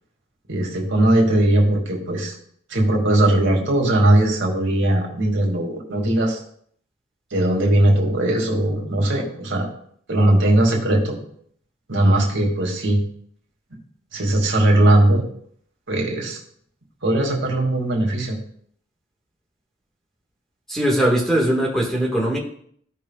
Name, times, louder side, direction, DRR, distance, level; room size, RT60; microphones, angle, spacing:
voice 1, 0.5-2.3 2.7-6.4 7.3-9.7 10.1-11.2 11.9-13.0 14.1-15.2 15.9-16.4 17.0-18.4, right 1 dB, 70° right, -1 dB, 2.3 m, -19 dB
voice 2, 20.7-22.4, right 1 dB, ahead, -2 dB, 1.7 m, -20 dB
15.5 x 5.8 x 2.4 m, 0.63 s
head